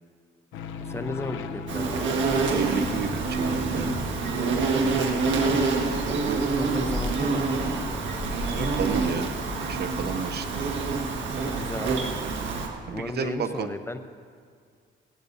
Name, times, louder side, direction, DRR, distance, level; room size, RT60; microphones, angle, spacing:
sound 1, 0.5-11.0, left 5 dB, 85° left, 0.8 m, -41 dB
voice 1, 0.8-2.2 4.8-5.7 6.3-7.8 11.4-12.0 12.9-14.1, left 2 dB, 15° left, 8 dB, 0.7 m, -35 dB
Insect, 1.7-12.7, right 4 dB, 70° right, 1.6 m, -27 dB
sound 2, 2.2-9.2, left 1 dB, 20° right, 4.0 m, -36 dB
voice 2, 2.5-3.9 6.1-6.4 8.5-9.3 9.6-10.5 12.9-13.7, right 6 dB, 55° right, 10 dB, 0.8 m, -32 dB
17.5 x 15.0 x 2.7 m, 2.1 s
cardioid pair, 90°, 20 cm